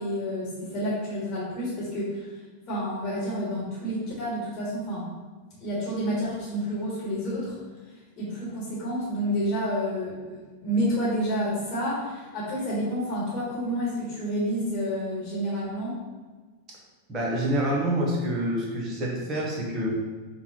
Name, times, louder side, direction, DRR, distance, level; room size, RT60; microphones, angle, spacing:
voice 1, 0.0-2.3 2.7-5.1 5.6-7.6 8.2-16.0, equal, 35° left, -6 dB, 1.3 m, -29 dB
voice 2, 17.1-19.9, right 1 dB, 25° right, -2 dB, 1.0 m, -27 dB
5.3 x 2.3 x 3.0 m, 1.4 s
figure-of-eight pair, 90°, 0 cm